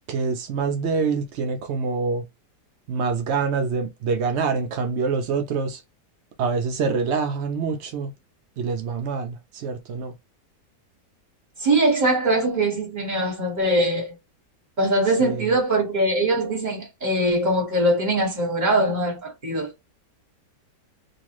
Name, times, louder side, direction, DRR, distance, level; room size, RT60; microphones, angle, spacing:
voice 1, 0.1-2.3 2.9-5.8 6.4-8.1 8.6-10.1 15.2-15.5, right 5 dB, 85° right, 0.6 m, -25 dB
voice 2, 11.6-14.1 14.8-19.7, right 1 dB, 30° right, 1.4 m, -22 dB
2.8 x 2.4 x 2.9 m
omnidirectional pair, 1.8 m